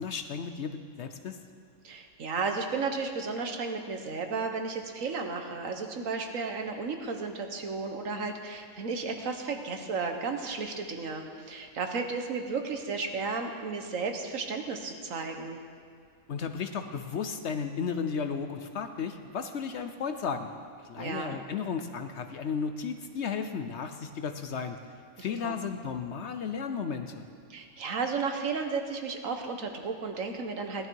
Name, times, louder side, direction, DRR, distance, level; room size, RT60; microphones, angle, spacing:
voice 1, 0.0-1.4 16.3-20.5 20.8-24.8 25.2-27.2, left 6 dB, 60° left, 8 dB, 0.9 m, -34 dB
voice 2, 1.8-15.6 20.9-21.4 25.2-25.6 27.5-30.9, right 4 dB, 70° right, 5 dB, 1.5 m, -33 dB
16.5 x 11.5 x 4.6 m, 2.2 s
omnidirectional pair, 1.5 m